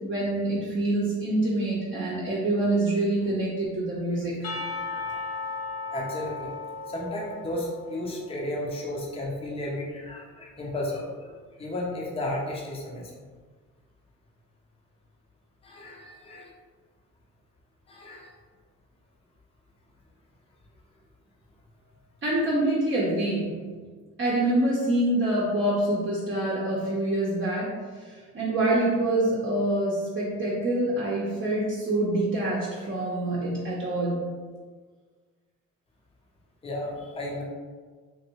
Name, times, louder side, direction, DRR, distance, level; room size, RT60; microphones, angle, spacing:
voice 1, 0.0-4.5 22.2-23.6 24.2-27.7 28.3-34.2, right 1 dB, 40° right, -7 dB, 0.8 m, -26 dB
Percussion / Church bell, 4.4-8.4, left 4 dB, 60° left, 0.6 m, -36 dB
voice 2, 4.9-5.2 5.9-6.5 6.9-13.2 15.6-16.5 17.9-18.3 36.6-37.4, left 1 dB, 20° left, -3 dB, 0.6 m, -34 dB
3.0 x 2.6 x 2.9 m, 1.5 s
cardioid pair, 90°, 30 cm